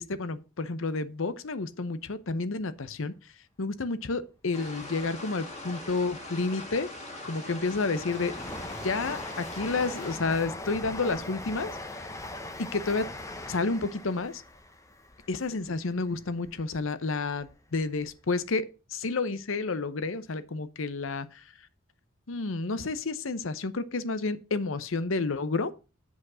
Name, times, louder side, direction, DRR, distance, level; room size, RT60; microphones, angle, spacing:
voice 1, 0.0-3.1 3.6-6.9 7.2-8.3 8.8-12.1 12.6-13.1 13.5-14.4 15.3-18.7 18.9-21.3 22.3-25.7, left 3 dB, 65° left, 0.8 m, -30 dB
sound 1, 4.5-10.2, left 1 dB, 30° left, 2.2 m, -42 dB
Train, 7.1-16.9 17.3-18.2 18.4-18.5, left 2 dB, 15° left, 0.8 m, -41 dB
8.4 x 5.2 x 6.2 m
head